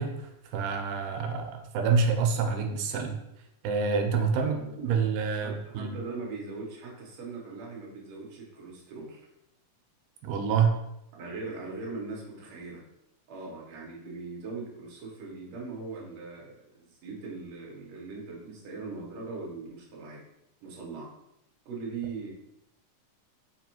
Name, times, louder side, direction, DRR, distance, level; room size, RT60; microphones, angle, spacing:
voice 1, 0.0-3.2 3.6-6.0 10.2-10.8, right 5 dB, 85° right, 4 dB, 2.1 m, -27 dB
voice 2, 4.3-4.8 5.4-9.3 11.1-12.8 13.3-20.2 20.6-21.1 21.7-22.3, right 3 dB, 70° right, -3 dB, 1.8 m, -40 dB
5.1 x 2.3 x 2.8 m, 0.84 s
omnidirectional pair, 3.6 m